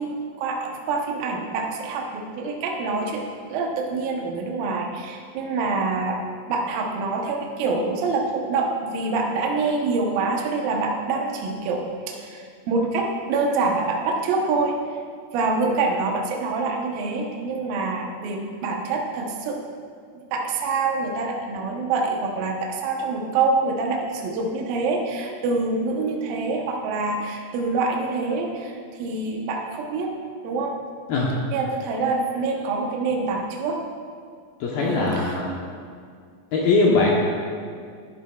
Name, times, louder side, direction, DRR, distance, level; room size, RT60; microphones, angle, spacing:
voice 1, 0.0-3.2 3.5-6.2 6.5-14.8 15.3-19.6 20.3-30.1 30.4-30.8 31.5-33.8 34.8-35.4, right 3 dB, 75° right, 0 dB, 2.2 m, -26 dB
voice 2, 34.6-35.5 36.5-37.2, left 3 dB, 70° left, -3 dB, 2.4 m, -20 dB
13.0 x 11.0 x 2.3 m, 2.2 s
omnidirectional pair, 5.2 m